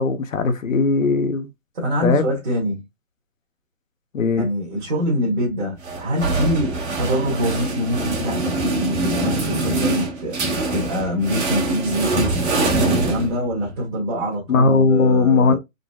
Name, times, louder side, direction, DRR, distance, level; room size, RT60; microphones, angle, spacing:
voice 1, 0.0-1.5 2.0-2.3 4.1-4.5 14.5-15.6, left 4 dB, 70° left, 0.7 m, -18 dB
voice 2, 1.7-2.8 4.4-15.6, equal, 35° right, 1.2 m, -25 dB
sound 1, 5.8-13.8, right 2 dB, 55° right, 1.5 m, -24 dB
3.8 x 2.0 x 2.2 m
hypercardioid pair, 165°, 41 cm